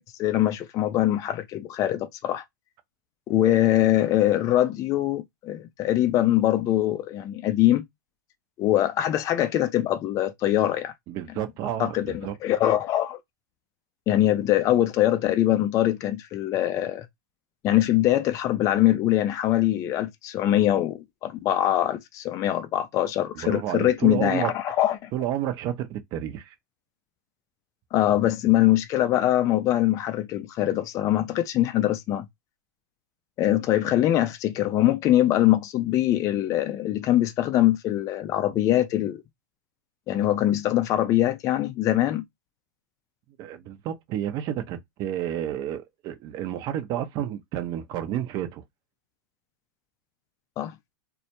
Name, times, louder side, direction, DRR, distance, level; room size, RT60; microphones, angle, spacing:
voice 1, 0.2-2.4 3.3-7.8 8.6-10.9 11.8-13.2 14.1-17.1 17.6-25.1 27.9-32.2 33.4-39.2 40.1-42.2 50.6-50.7, left 13 dB, 30° left, 0.4 m, -23 dB
voice 2, 11.1-12.4 23.4-24.5 25.1-26.6 43.4-48.6, right 11 dB, 40° right, 0.5 m, -30 dB
2.2 x 2.0 x 2.8 m
hypercardioid pair, 115°, 10 cm